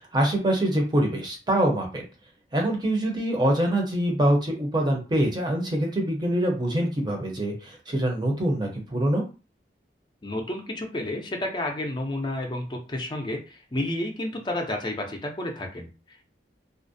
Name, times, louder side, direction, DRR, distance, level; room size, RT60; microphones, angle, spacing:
voice 1, 0.1-2.0 2.5-7.5 7.9-9.2, right 1 dB, 25° right, 1 dB, 0.6 m, -24 dB
voice 2, 10.2-16.3, left 1 dB, 25° left, 3 dB, 0.5 m, -31 dB
2.4 x 2.0 x 2.6 m, 0.33 s
head